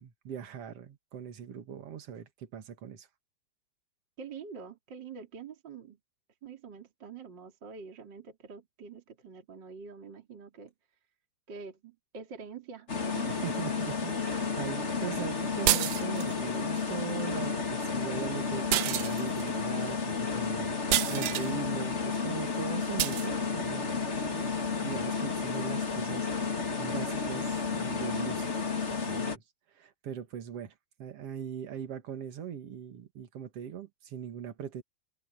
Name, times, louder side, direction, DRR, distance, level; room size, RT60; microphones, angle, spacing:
voice 1, 0.0-3.1 13.3-26.3 26.8-28.5 28.9-29.4 29.8-30.7 31.0-34.8, right 8 dB, 45° right, 2.3 m, -40 dB
voice 2, 4.2-6.0 6.4-10.7 11.5-13.5, right 5 dB, 30° right, 3.3 m, -46 dB
sound 1, 12.9-29.4, left 5 dB, 35° left, 1.2 m, -32 dB
sound 2, 15.7-16.4 18.7-19.5 20.9-21.5 23.0-23.3, right 15 dB, 80° right, 2.0 m, -28 dB
omnidirectional pair, 4.6 m